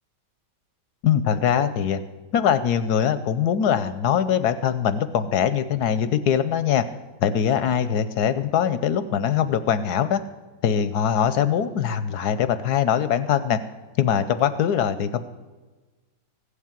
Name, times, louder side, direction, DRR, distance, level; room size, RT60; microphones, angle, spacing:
voice 1, 1.0-2.0 2.3-6.8 7.2-10.2 10.6-13.6 14.0-15.2, left 8 dB, 70° left, 12 dB, 1.0 m, -22 dB
15.5 x 8.4 x 7.4 m, 1.3 s
omnidirectional pair, 2.2 m